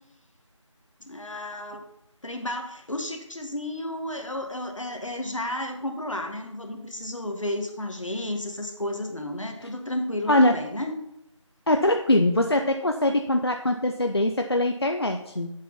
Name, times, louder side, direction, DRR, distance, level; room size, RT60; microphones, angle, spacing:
voice 1, 1.0-1.8 2.2-11.0, left 1 dB, 75° left, 4 dB, 1.9 m, -32 dB
voice 2, 11.7-15.5, left 1 dB, 50° left, 4 dB, 0.7 m, -22 dB
11.0 x 7.6 x 4.2 m, 0.83 s
figure-of-eight pair, 180°, 16 cm